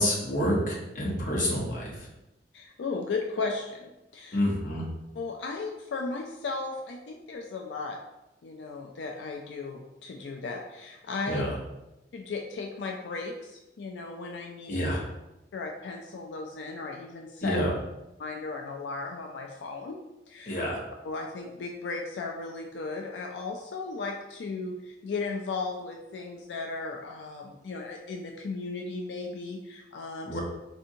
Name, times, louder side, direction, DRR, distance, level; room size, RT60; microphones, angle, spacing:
voice 1, 0.0-2.1 4.3-4.8 11.3-11.5 14.7-15.0 17.4-17.7 20.5-20.8 30.3-30.4, equal, 50° left, -3 dB, 0.9 m, -28 dB
voice 2, 2.5-4.4 5.1-8.0 8.4-11.4 12.1-14.8 15.5-17.6 18.2-20.0 20.3-20.6 21.0-30.4, left 3 dB, 85° left, 1 dB, 0.4 m, -36 dB
4.3 x 2.6 x 2.7 m, 0.96 s
head